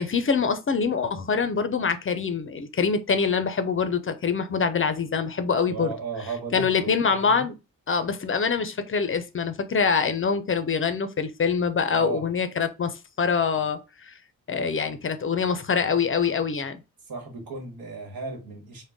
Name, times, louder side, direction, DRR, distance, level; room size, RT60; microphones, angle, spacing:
voice 1, 0.0-5.9 6.5-7.5 7.9-14.1 14.5-16.8, left 5 dB, 35° left, 0.4 m, -25 dB
voice 2, 5.6-7.5 11.9-12.3 17.0-18.8, right 4 dB, 80° right, 1.3 m, -35 dB
3.7 x 2.1 x 3.5 m
cardioid pair, 85°, 35 cm